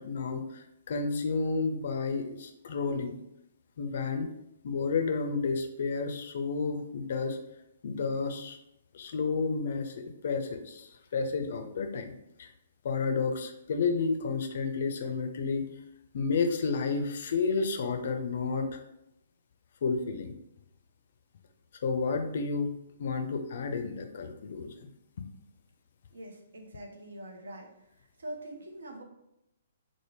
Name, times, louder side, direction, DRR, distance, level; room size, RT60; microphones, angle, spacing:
voice 1, 0.0-3.2 3.8-4.3 4.6-7.4 7.8-8.6 8.9-9.9 10.2-12.1 12.4-12.5 12.8-15.6 16.1-18.8 19.8-20.3 21.8-22.7 23.0-24.9, left 4 dB, 55° left, 6 dB, 0.4 m, -31 dB
voice 2, 26.1-27.7 28.2-29.0, right 1 dB, 65° right, 2 dB, 0.6 m, -43 dB
3.4 x 2.0 x 3.1 m, 0.83 s
figure-of-eight pair, 120°, 0 cm